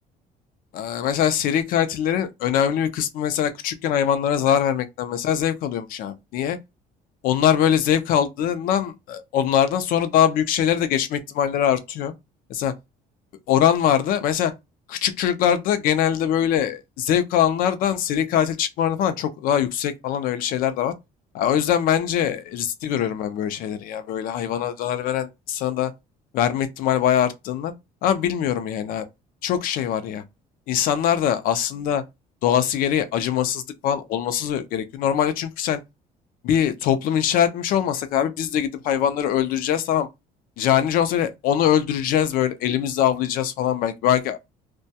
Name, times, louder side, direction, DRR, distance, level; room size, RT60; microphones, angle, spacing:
voice 1, 0.8-6.6 7.2-12.1 12.5-12.7 13.5-14.5 14.9-20.9 21.3-25.9 26.3-27.7 28.0-29.1 29.4-30.2 30.7-32.0 32.4-35.8 36.4-40.1 40.6-44.4, left 9 dB, 65° left, 0.5 m, -22 dB
2.2 x 2.2 x 2.7 m
cardioid pair, 140°, 16 cm